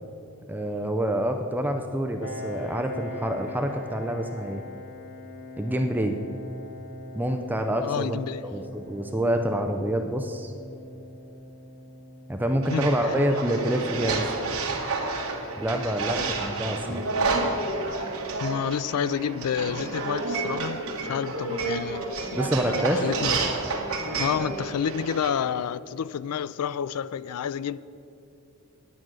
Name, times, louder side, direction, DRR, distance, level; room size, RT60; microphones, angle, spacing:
voice 1, 0.5-4.6 5.6-6.2 7.1-8.2 8.5-10.5 12.3-14.3 15.6-17.1 22.4-23.1, right 1 dB, 10° right, 0.4 m, -27 dB
Piano, 2.2-17.6, left 1 dB, 65° left, 1.6 m, -43 dB
voice 2, 7.8-8.4 12.7-13.1 18.4-23.3 24.2-27.8, left 8 dB, 90° left, 0.4 m, -30 dB
sound 1, 12.6-25.3, right 3 dB, 70° right, 1.6 m, -30 dB
9.7 x 9.0 x 6.3 m
head